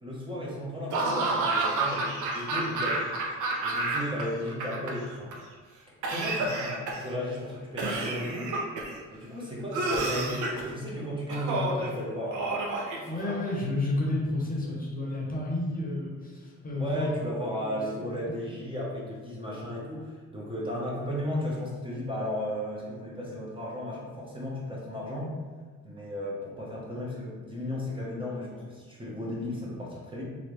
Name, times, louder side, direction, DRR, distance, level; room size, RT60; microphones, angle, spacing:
voice 1, 0.0-3.1 3.6-5.3 6.1-8.6 9.1-12.6 13.1-13.5 16.7-25.3 25.8-30.2, left 1 dB, 15° right, -5 dB, 0.8 m, -35 dB
Laughter / Cough, 0.9-4.2 4.5-5.3 6.0-7.1 7.8-9.0 9.7-10.7 11.3-11.9 12.3-13.5, right 2 dB, 80° right, 0.7 m, -29 dB
voice 2, 13.1-17.2 17.5-18.3, left 2 dB, 30° left, -3 dB, 0.8 m, -31 dB
3.2 x 2.5 x 3.0 m, 1.4 s
cardioid pair, 90°, 30 cm